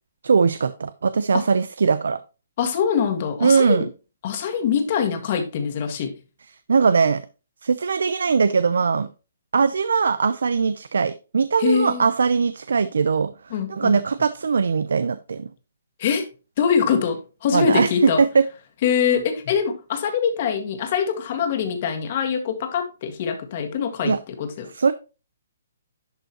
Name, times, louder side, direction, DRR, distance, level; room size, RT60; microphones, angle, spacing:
voice 1, 0.2-2.2 3.4-3.9 6.7-7.2 7.6-9.1 9.5-13.3 13.7-15.5 17.5-17.9 18.2-18.4 24.0-24.2 24.7-24.9, right 5 dB, 85° right, 13 dB, 0.6 m, -20 dB
voice 2, 2.6-3.9 4.2-6.2 11.6-12.1 13.5-14.0 16.0-16.3 16.6-18.2 18.8-24.7, left 7 dB, 35° left, 5 dB, 1.7 m, -23 dB
11.0 x 5.3 x 3.0 m, 0.31 s
hypercardioid pair, 170°, 0 cm